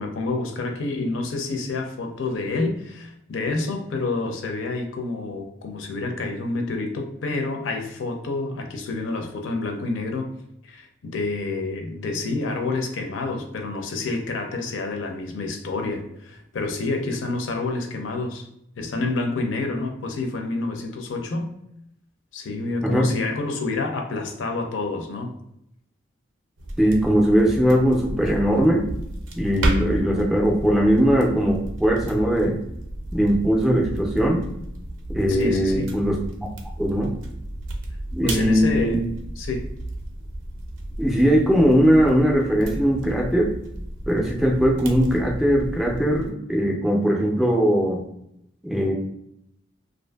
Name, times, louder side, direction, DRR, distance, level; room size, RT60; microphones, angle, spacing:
voice 1, 0.0-10.3 10.6-18.5 18.8-21.5 22.3-25.3 35.3-35.9 38.2-39.0 39.4-39.7, left 3 dB, 85° left, 4 dB, 0.5 m, -28 dB
sound 1, 26.6-46.3, right 1 dB, 80° right, 0.5 m, -32 dB
voice 2, 26.8-28.9 29.4-32.6 33.1-34.5 35.1-36.5 36.8-37.1 38.1-39.0 41.0-43.5 44.1-48.1 48.6-48.9, equal, ahead, -2 dB, 0.3 m, -20 dB
2.5 x 2.5 x 2.2 m, 0.77 s
head